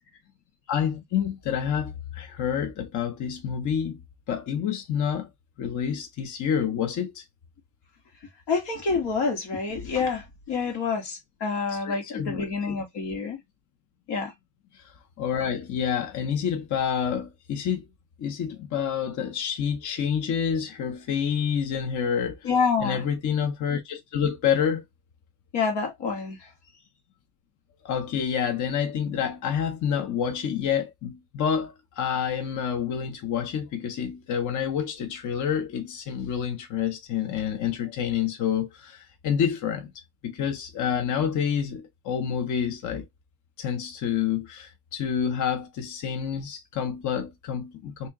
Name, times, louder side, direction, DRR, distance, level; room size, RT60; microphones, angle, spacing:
voice 1, 0.7-4.0 4.3-5.3 5.6-7.2 11.7-12.7 14.7-17.8 18.2-22.5 22.8-24.8 27.8-39.9 40.2-43.1 43.6-48.1, left 8 dB, 50° left, 0.7 m, -28 dB
voice 2, 8.5-13.4 14.1-14.3 22.4-23.0 25.5-26.4, left 5 dB, 85° left, 1.5 m, -27 dB
2.9 x 2.8 x 3.5 m
cardioid pair, 150°, 39 cm